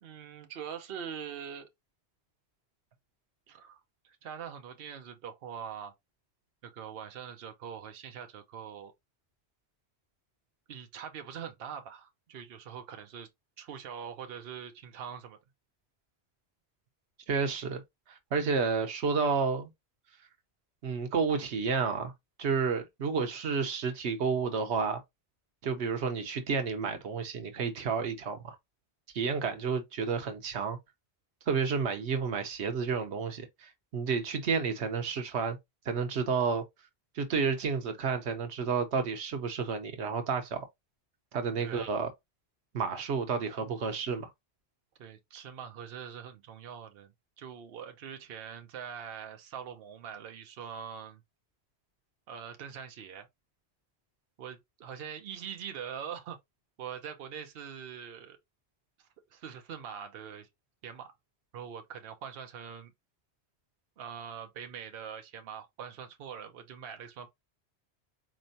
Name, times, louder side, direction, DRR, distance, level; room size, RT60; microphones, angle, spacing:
voice 1, 0.0-1.7 3.5-5.9 6.6-8.9 10.7-13.3 13.6-15.4 41.6-41.9 45.0-47.1 47.4-51.2 52.3-53.3 54.4-56.4 56.8-58.4 59.0-60.5 60.8-61.1 61.5-62.9 64.0-67.3, right 8 dB, 65° right, 0.9 m, -43 dB
voice 2, 17.3-17.8 18.3-19.7 20.8-22.1 22.4-25.0 25.6-28.6 29.1-30.8 31.5-35.6 35.9-36.6 37.2-40.6 41.3-42.1 42.7-44.3, right 5 dB, 90° right, 1.1 m, -30 dB
4.3 x 3.1 x 2.6 m
omnidirectional pair, 1.1 m